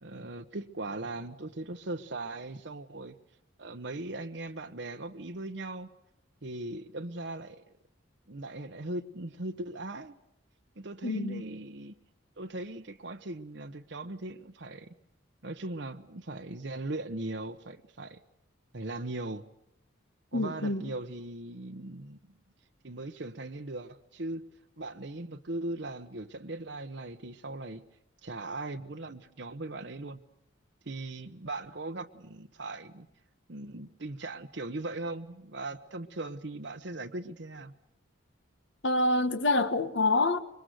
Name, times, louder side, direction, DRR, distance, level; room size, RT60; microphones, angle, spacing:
voice 1, 0.0-3.2 3.6-5.9 6.4-7.6 8.3-10.2 10.8-11.9 12.4-14.9 15.4-18.2 18.7-19.4 20.3-22.2 22.8-24.4 24.8-27.8 28.2-30.2 30.8-33.1 33.5-37.7, right 2 dB, 60° right, 1.0 m, -39 dB
voice 2, 11.0-11.4 20.3-20.8 38.8-40.4, left 2 dB, 65° left, 1.5 m, -26 dB
26.0 x 23.0 x 7.9 m
head